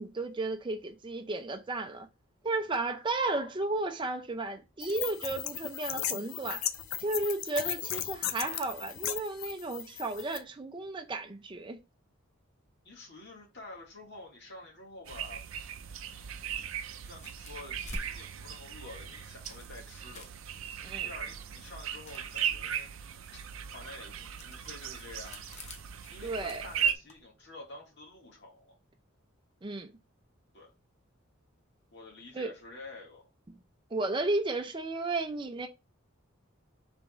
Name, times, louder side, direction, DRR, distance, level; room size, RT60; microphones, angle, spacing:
voice 1, 0.0-2.1 2.4-6.7 7.0-11.8 20.8-21.1 26.2-26.6 29.6-29.9 32.3-32.5 33.9-35.7, right 2 dB, 25° right, 0.5 m, -33 dB
sound 1, 4.8-10.4, left 10 dB, 85° left, 0.5 m, -36 dB
voice 2, 12.8-15.5 17.0-20.3 21.0-22.9 23.3-23.4 23.7-25.4 26.1-28.8 30.5-30.7 31.9-33.3, left 2 dB, 60° left, 1.8 m, -49 dB
sound 2, 15.0-26.9, right 8 dB, 75° right, 0.5 m, -37 dB
sound 3, 17.1-27.2, left 1 dB, 35° left, 0.7 m, -51 dB
3.5 x 3.4 x 4.1 m
head